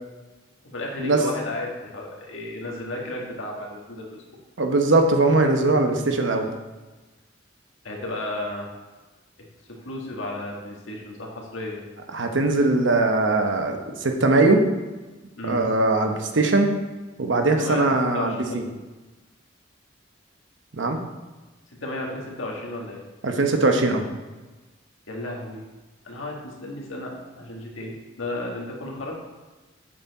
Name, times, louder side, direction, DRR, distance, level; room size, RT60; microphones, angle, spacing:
voice 1, 0.6-4.2 7.8-8.7 9.8-11.8 15.4-15.6 17.6-18.7 21.8-23.0 25.1-25.6 26.0-29.1, left 1 dB, 85° left, -1 dB, 1.8 m, -33 dB
voice 2, 4.6-6.5 12.1-14.6 15.4-16.7 17.2-18.6 20.8-21.0 23.2-24.0, right 2 dB, 70° right, 4 dB, 0.9 m, -20 dB
7.4 x 6.9 x 4.1 m, 1.2 s
head